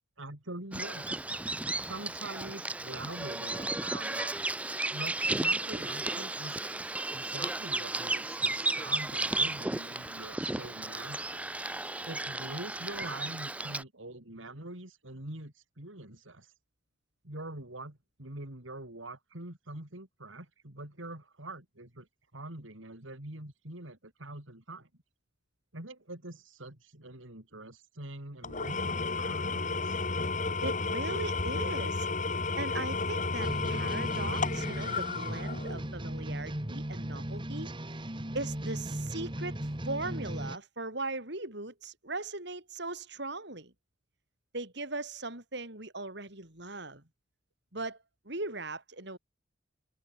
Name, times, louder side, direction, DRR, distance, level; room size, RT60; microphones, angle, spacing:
voice 1, 0.2-1.1 1.8-4.3 4.9-6.6 7.1-11.4 12.0-16.5 17.2-22.1 22.3-24.9 25.7-30.0, right 2 dB, 85° right, 4.3 m, -44 dB
Bird vocalization bird call bird song, 0.7-13.8, right 2 dB, 5° right, 0.4 m, -34 dB
Engine / Tools, 28.4-35.9, left 3 dB, 40° left, 1.7 m, -32 dB
voice 2, 30.6-32.1 32.6-43.7 44.5-47.0 47.7-48.0 48.2-49.2, right 2 dB, 60° right, 6.0 m, -39 dB
sound 1, 33.4-40.6, right 1 dB, 25° right, 1.9 m, -37 dB
head